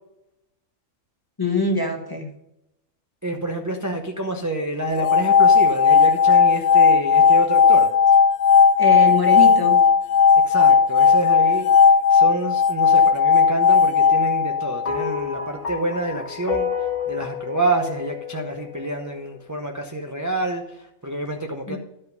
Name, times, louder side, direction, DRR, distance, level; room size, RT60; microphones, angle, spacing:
voice 1, 1.4-2.3 8.8-9.8 21.7-21.8, left 3 dB, 20° left, 3 dB, 1.1 m, -23 dB
voice 2, 3.2-7.9 10.5-21.8, right 2 dB, 15° right, 1 dB, 0.7 m, -28 dB
sound 1, 4.9-15.1, left 6 dB, 70° left, 0.8 m, -16 dB
sound 2, 14.9-19.3, left 7 dB, 35° left, 0.7 m, -30 dB
12.0 x 5.5 x 5.3 m, 0.86 s
omnidirectional pair, 1.4 m